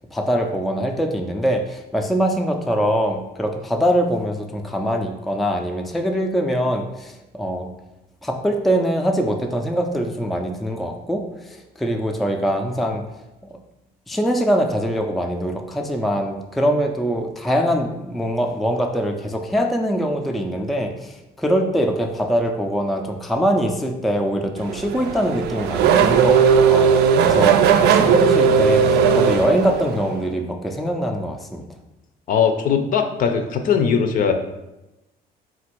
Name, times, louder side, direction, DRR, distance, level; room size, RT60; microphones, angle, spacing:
voice 1, 0.1-7.7 8.2-13.0 13.4-13.5 14.1-31.7, equal, ahead, 3 dB, 0.4 m, -23 dB
Race car auto racing / Accelerating revving vroom, 24.6-30.2, right 6 dB, 80° right, 0.4 m, -17 dB
voice 2, 32.3-34.3, left 7 dB, 55° left, 6 dB, 0.5 m, -19 dB
3.9 x 2.5 x 4.4 m, 0.98 s
cardioid pair, 110°, 17 cm